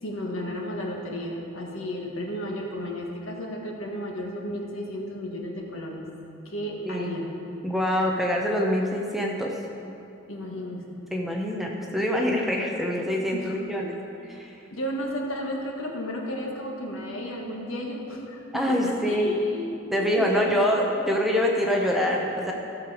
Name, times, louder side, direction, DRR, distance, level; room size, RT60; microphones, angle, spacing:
voice 1, 0.0-6.0 6.4-7.3 10.3-11.0 13.3-13.6 14.7-19.7 20.2-20.6, equal, 70° left, 0 dB, 1.5 m, -33 dB
voice 2, 7.6-9.5 11.1-13.9 14.3-14.5 18.5-19.3 19.9-22.5, equal, ahead, -1 dB, 0.8 m, -25 dB
15.0 x 6.7 x 4.9 m, 2.7 s
head